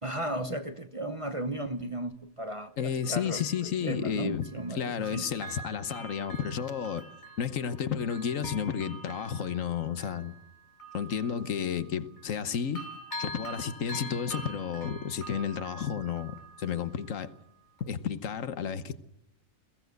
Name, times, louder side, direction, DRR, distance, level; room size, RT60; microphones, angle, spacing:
voice 1, 0.0-5.3, right 1 dB, 30° right, 0.8 m, -35 dB
voice 2, 2.8-7.1 7.4-10.3 10.9-12.8 13.2-17.3 17.8-19.0, left 7 dB, 70° left, 1.3 m, -32 dB
Bell, 2.8-4.7 5.0-12.5 12.8-17.4 17.8-17.9, right 1 dB, 35° left, 4.5 m, -45 dB
22.0 x 16.5 x 8.0 m
omnidirectional pair, 1.4 m